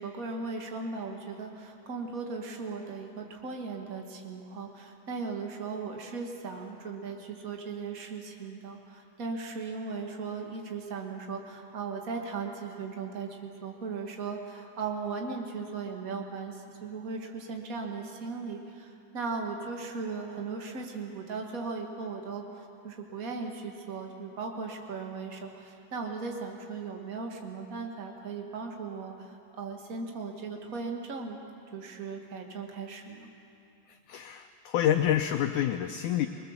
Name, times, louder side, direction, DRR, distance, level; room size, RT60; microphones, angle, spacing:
voice 1, 0.0-31.4 31.7-33.3, right 4 dB, 75° right, 2 dB, 0.8 m, -37 dB
voice 2, 34.1-36.3, left 11 dB, 85° left, 6 dB, 1.7 m, -27 dB
24.5 x 20.0 x 7.2 m, 2.8 s
omnidirectional pair, 4.3 m